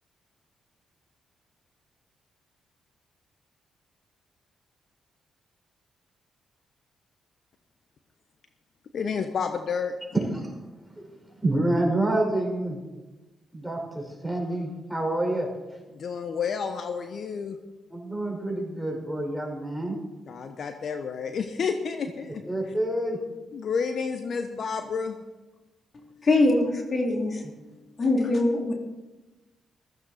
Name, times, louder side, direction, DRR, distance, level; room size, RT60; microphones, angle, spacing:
voice 1, 8.9-9.9 15.9-17.6 20.3-22.4 23.5-25.2, left 6 dB, 60° left, 7 dB, 0.9 m, -30 dB
voice 2, 10.1-10.5 10.9-12.8 13.5-15.5 17.9-20.0 22.5-23.2, right 1 dB, 5° right, -1 dB, 5.1 m, -28 dB
voice 3, 26.2-27.4 28.0-28.7, left 2 dB, 45° left, 1 dB, 3.0 m, -23 dB
15.0 x 14.5 x 4.2 m, 1.1 s
supercardioid pair, 50°, 0 cm